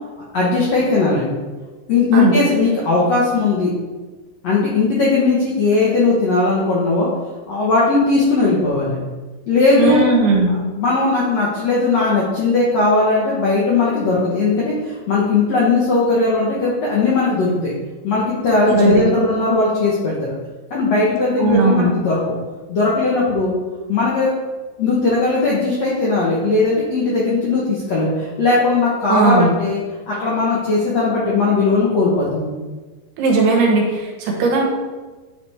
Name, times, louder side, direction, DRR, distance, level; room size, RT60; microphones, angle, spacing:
voice 1, 0.3-1.3 1.9-3.7 4.4-7.1 7.5-9.0 9.5-10.0 10.8-17.7 18.0-20.3 20.7-22.2 22.7-23.5 23.9-24.3 24.8-29.8 30.1-32.5, left 3 dB, 70° left, -6 dB, 1.6 m, -18 dB
voice 2, 9.8-10.6 18.7-19.0 21.4-21.9 29.1-29.6 33.2-34.6, right 3 dB, 75° right, 0 dB, 3.1 m, -17 dB
10.0 x 3.4 x 4.3 m, 1.3 s
omnidirectional pair, 4.8 m